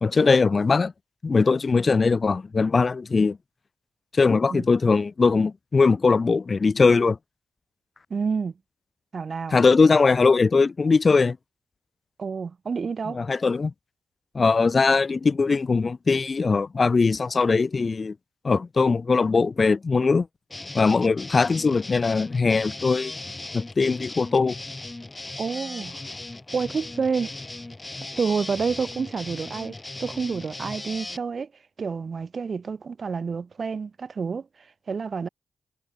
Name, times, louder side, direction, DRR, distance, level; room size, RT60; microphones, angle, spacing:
voice 1, 0.0-0.9 1.2-3.4 4.1-7.2 9.5-11.4 13.1-13.7 14.3-18.1 18.4-20.3 20.7-23.1 23.5-24.6, left 4 dB, 45° left, 0.5 m, -20 dB
voice 2, 8.1-8.5 9.1-9.6 12.2-13.2 25.4-26.0 26.5-27.3 28.2-29.7 30.0-31.5 31.8-35.3, right 5 dB, 55° right, 5.7 m, -29 dB
sound 1, 20.5-31.2, left 2 dB, 25° left, 5.2 m, -38 dB
supercardioid pair, 50°, 0 cm